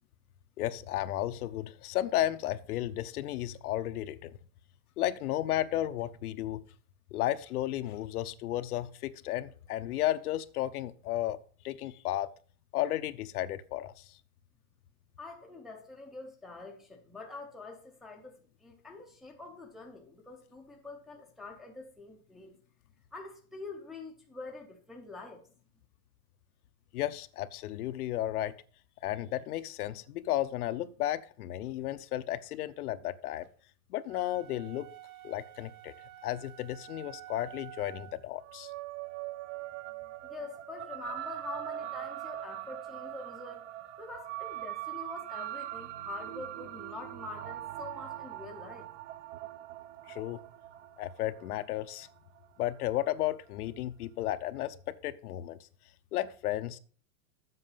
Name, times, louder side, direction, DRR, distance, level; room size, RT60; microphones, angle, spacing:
voice 1, 0.6-4.3 5.0-6.6 7.1-11.4 11.6-12.3 12.7-13.9 26.9-28.5 29.0-33.5 33.9-34.9 35.2-35.9 36.2-38.7 50.1-50.4 51.0-52.1 52.6-55.6 56.1-56.8, left 13 dB, 90° left, 0.8 m, -33 dB
voice 2, 15.2-22.5 23.1-25.4 40.2-43.6 44.0-48.9, left 3 dB, ahead, 0.4 m, -45 dB
sound 1, 34.0-38.3, right 15 dB, 80° right, 1.0 m, -50 dB
sound 2, 38.4-53.1, right 14 dB, 60° right, 0.6 m, -42 dB
7.9 x 5.9 x 5.5 m
supercardioid pair, 160°, 44 cm